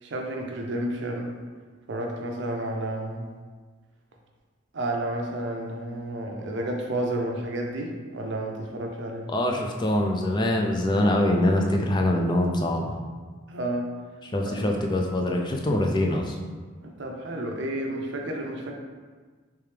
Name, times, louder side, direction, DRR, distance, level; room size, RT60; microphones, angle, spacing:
voice 1, 0.0-1.3 1.9-3.3 4.7-9.3 13.5-13.9 14.5-14.7 16.8-18.7, right 1 dB, 60° right, 1 dB, 0.6 m, -31 dB
voice 2, 9.3-12.9 14.2-16.4, left 1 dB, 20° left, 1 dB, 0.3 m, -24 dB
3.3 x 3.3 x 3.3 m, 1.5 s
head